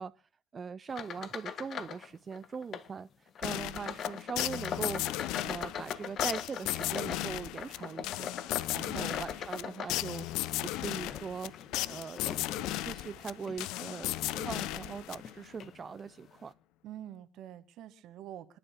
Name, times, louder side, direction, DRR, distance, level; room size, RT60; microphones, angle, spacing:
voice 1, 0.0-5.0 5.4-8.3 8.7-10.3 10.6-11.5 11.9-12.2 12.6-16.5, right 6 dB, 35° right, 0.6 m, -41 dB
sound 1, 0.9-2.1 2.3-2.9 3.4-10.4 11.0-12.8 13.4-13.6 14.2-14.3 15.2-15.3 15.6-15.8, left 7 dB, 50° left, 1.5 m, -40 dB
sound 2, 3.4-15.6, left 16 dB, 65° left, 0.7 m, -36 dB
voice 2, 8.8-9.2 16.8-18.6, right 11 dB, 60° right, 1.7 m, -46 dB
27.5 x 11.0 x 2.2 m
hypercardioid pair, 60°, 0 cm